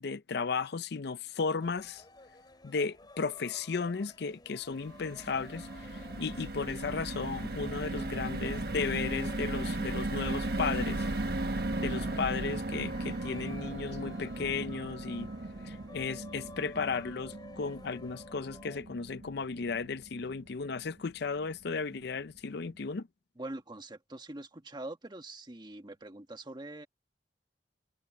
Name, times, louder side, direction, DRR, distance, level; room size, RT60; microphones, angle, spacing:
voice 1, 0.0-2.0 2.6-11.1 11.8-15.3 15.6-23.1, left 4 dB, 65° left, 0.5 m, -35 dB
sound 1, 1.6-18.8, left 2 dB, 25° left, 3.3 m, -53 dB
sound 2, 4.7-21.0 21.4-21.6 21.8-22.0, right 2 dB, 60° right, 1.3 m, -37 dB
voice 2, 23.4-26.9, right 2 dB, 25° right, 1.4 m, -43 dB
head